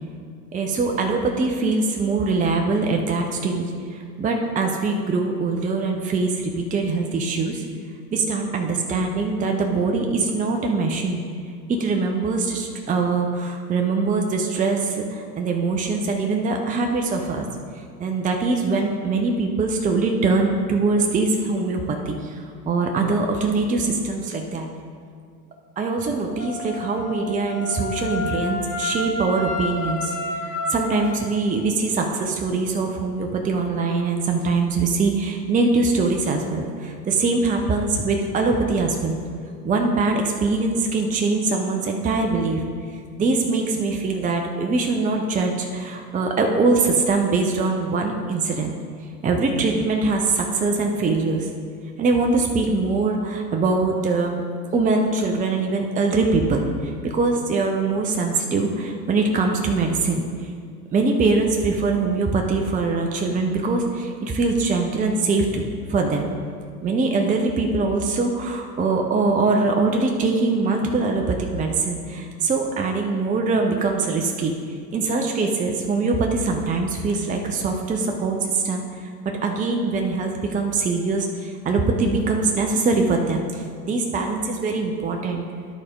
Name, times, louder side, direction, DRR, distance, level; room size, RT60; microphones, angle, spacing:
voice 1, 0.5-7.6 8.1-11.2 11.7-17.5 17.7-24.7 25.8-30.2 30.4-39.2 39.6-42.6 43.2-48.8 49.2-51.5 52.0-54.4 54.7-60.5 60.9-65.6 65.9-66.3 66.8-74.5 74.9-85.4, right 3 dB, 15° right, 2 dB, 0.7 m, -23 dB
Wind instrument woodwind instrument, 26.4-31.1, left 3 dB, 75° left, 1.4 m, -30 dB
11.0 x 4.2 x 5.0 m, 2.2 s
hypercardioid pair, 85°, 48 cm